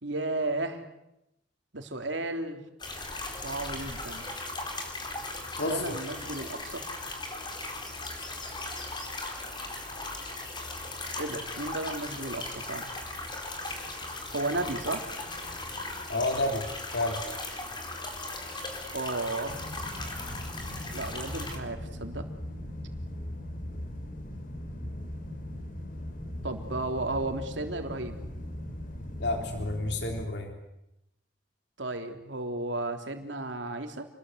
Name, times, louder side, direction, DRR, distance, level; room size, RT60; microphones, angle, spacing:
voice 1, 0.0-0.8 1.7-2.6 3.4-4.3 5.6-6.8 11.2-12.9 14.3-15.1 18.9-19.6 20.9-22.3 26.4-28.2 31.8-34.0, right 2 dB, 75° right, 5 dB, 3.3 m, -33 dB
sound 1, 2.8-21.6, left 2 dB, 25° left, 4.4 m, -38 dB
voice 2, 5.6-6.0 16.1-16.6 16.9-17.2 29.2-30.5, left 2 dB, 65° left, 4 dB, 3.4 m, -30 dB
sound 2, 19.5-30.3, left 1 dB, 50° left, 3.3 m, -39 dB
29.0 x 20.5 x 8.2 m, 0.85 s
head